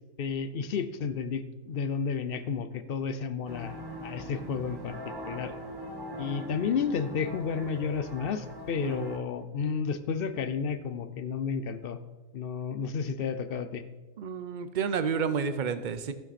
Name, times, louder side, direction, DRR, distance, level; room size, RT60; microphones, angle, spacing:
voice 1, 0.2-5.0 5.2-5.5 6.2-12.0 12.3-13.8, left 6 dB, 60° left, 11 dB, 0.6 m, -32 dB
sound 1, 3.5-9.2, equal, 20° right, 0.8 m, -41 dB
voice 2, 14.2-16.1, right 6 dB, 70° right, 11 dB, 0.4 m, -30 dB
15.5 x 5.8 x 4.2 m, 1.2 s
omnidirectional pair, 1.5 m